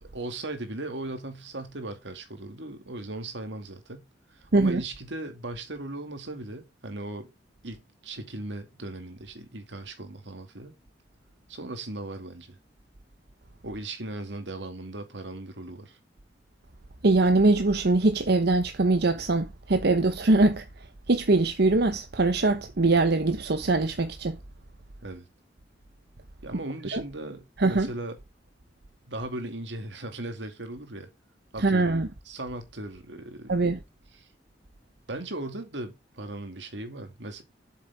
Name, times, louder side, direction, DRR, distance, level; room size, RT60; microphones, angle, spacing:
voice 1, 0.0-4.0 4.3-7.3 7.6-10.7 11.5-12.6 13.6-16.0 25.0-25.3 26.4-28.2 29.1-31.1 31.5-33.7 34.2-34.3 35.1-37.4, right 2 dB, 85° right, 2.4 m, -38 dB
voice 2, 17.0-20.7 21.1-24.4 26.9-27.0 27.6-27.9 31.6-32.1 33.5-33.8, right 2 dB, 65° right, 0.9 m, -22 dB
8.1 x 7.2 x 3.5 m
head